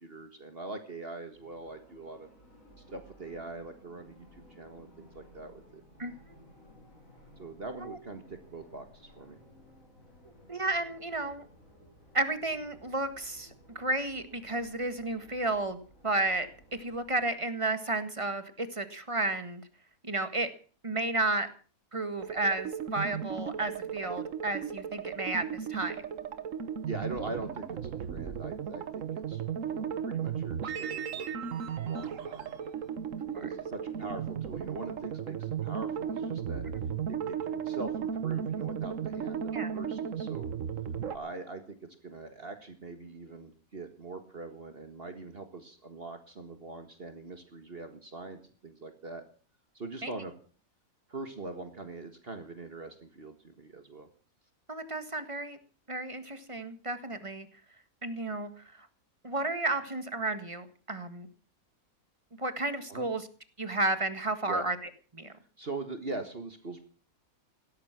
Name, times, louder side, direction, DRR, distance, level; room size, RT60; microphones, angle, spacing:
voice 1, 0.0-2.3 2.9-5.8 7.4-9.4 26.9-29.4 29.7-31.3 31.9-32.6 33.3-36.7 37.1-40.5 41.1-49.2 49.7-50.3 51.1-54.1 62.9-63.1 64.5-64.6 65.6-66.8, right 3 dB, 45° right, 7 dB, 1.8 m, -42 dB
sound 1, 1.3-17.3, equal, 70° left, 7.5 m, -57 dB
voice 2, 10.5-11.5 12.1-16.5 16.8-19.6 20.0-20.5 20.8-21.5 21.9-26.0 33.3-33.5 39.5-39.7 50.0-50.1 54.7-55.6 55.9-57.5 58.0-58.9 59.2-61.3 62.4-63.2 63.6-65.3, right 2 dB, 20° right, 10 dB, 1.8 m, -32 dB
sound 2, 22.2-41.2, right 8 dB, 65° right, 1.5 m, -35 dB
16.5 x 13.5 x 6.0 m, 0.41 s
omnidirectional pair, 1.5 m